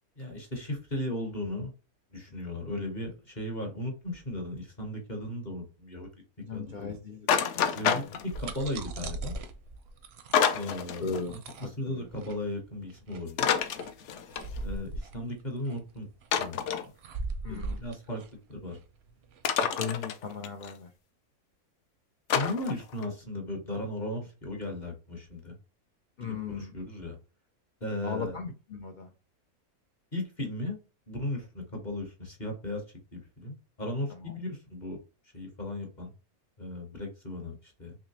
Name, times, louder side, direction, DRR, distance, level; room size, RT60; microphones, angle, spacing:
voice 1, 0.2-1.7 2.1-6.1 6.5-7.0 7.8-9.4 10.5-11.1 11.6-13.5 14.6-16.1 16.4-16.6 17.5-18.2 18.5-18.8 22.3-25.6 26.2-27.2 27.8-28.3 30.1-30.8 31.1-32.8 33.1-35.0 35.3-36.1 36.6-38.0, left 1 dB, 35° left, 2 dB, 0.8 m, -36 dB
voice 2, 6.4-8.2 11.0-12.1 17.4-17.8 18.1-18.2 19.8-20.9 26.2-26.7 28.0-29.1 34.1-34.3, left 5 dB, 85° left, 3 dB, 0.4 m, -38 dB
sound 1, 7.3-8.6 10.3-11.2 11.5-11.6 13.3-14.6 16.3-16.9 19.4-20.7 22.3-23.1, left 7 dB, 65° left, 0.7 m, -28 dB
sound 2, 8.1-19.4, right 3 dB, 65° right, 0.6 m, -40 dB
3.7 x 3.0 x 2.8 m, 0.32 s
omnidirectional pair, 1.6 m